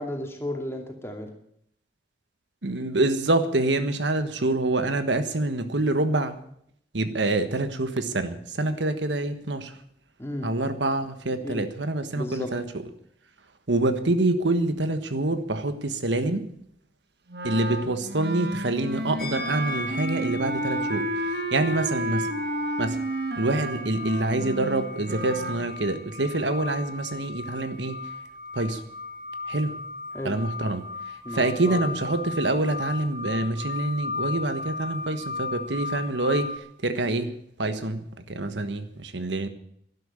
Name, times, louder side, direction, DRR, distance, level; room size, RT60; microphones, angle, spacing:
voice 1, 0.0-1.3 10.2-10.5 11.4-11.6 12.1-12.5 30.1-30.4 31.2-31.8, equal, 15° left, 3 dB, 2.4 m, -33 dB
voice 2, 2.6-6.4 6.9-9.7 10.4-12.8 13.7-16.5 17.4-22.3 22.8-23.0 23.4-28.0 28.5-28.8 29.5-29.7 30.2-30.8 31.3-36.5 36.8-37.3 37.6-38.0 38.3-39.5, right 2 dB, 90° right, 10 dB, 1.4 m, -26 dB
Wind instrument woodwind instrument, 17.3-25.6, right 1 dB, 65° right, 1.5 m, -31 dB
sound 1, 19.2-36.6, left 3 dB, 55° left, 2.2 m, -36 dB
12.0 x 12.0 x 8.8 m, 0.69 s
head